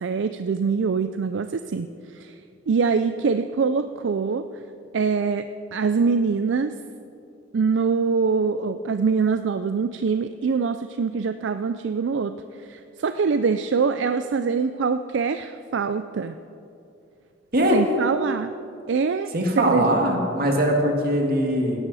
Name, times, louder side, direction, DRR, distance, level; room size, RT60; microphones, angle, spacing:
voice 1, 0.0-2.3 2.7-4.4 4.9-6.7 7.5-12.3 12.6-16.4 17.7-18.5 18.9-19.3 19.6-20.0, right 5 dB, 75° right, 10 dB, 0.4 m, -24 dB
voice 2, 19.3-21.8, equal, 55° right, 1 dB, 1.9 m, -21 dB
17.5 x 11.5 x 4.1 m, 2.6 s
head